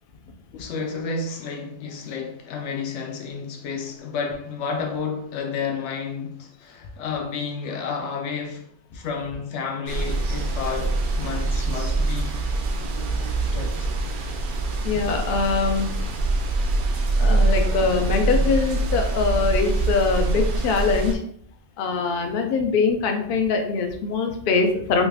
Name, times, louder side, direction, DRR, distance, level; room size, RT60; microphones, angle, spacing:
voice 1, 0.5-8.7 8.9-12.4 13.5-13.9, left 5 dB, 80° left, 0.9 m, -31 dB
sound 1, 9.9-21.1, right 2 dB, 60° right, 0.6 m, -24 dB
voice 2, 14.8-15.9 17.2-21.2 21.8-25.1, left 4 dB, 60° left, 0.6 m, -23 dB
3.0 x 2.3 x 3.3 m
omnidirectional pair, 1.2 m